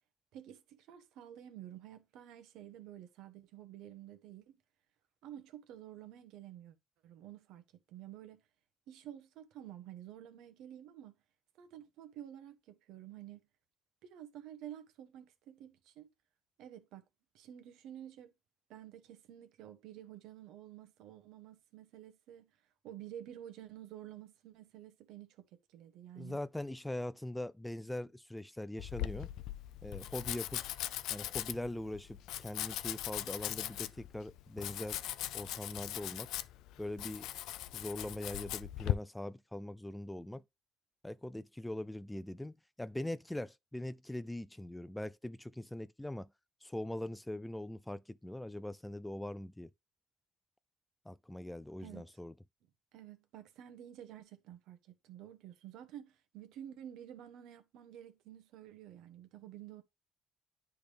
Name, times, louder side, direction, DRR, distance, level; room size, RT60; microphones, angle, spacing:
voice 1, 0.3-4.6 5.2-6.7 7.0-7.6 7.9-8.4 8.9-11.1 11.6-13.4 14.0-16.1 16.6-17.0 17.3-18.3 18.7-22.5 22.8-26.4 51.8-52.0 52.9-59.8, right 11 dB, 85° right, 1.0 m, -51 dB
voice 2, 26.2-29.3 29.8-30.6 31.1-35.0 35.3-36.3 36.8-37.3 37.7-40.4 41.0-46.3 46.6-49.7 51.1-52.3, left 1 dB, 5° left, 0.3 m, -42 dB
Domestic sounds home sounds, 28.8-38.9, left 13 dB, 85° left, 0.4 m, -40 dB
10.5 x 3.5 x 3.3 m
cardioid pair, 125°, 0 cm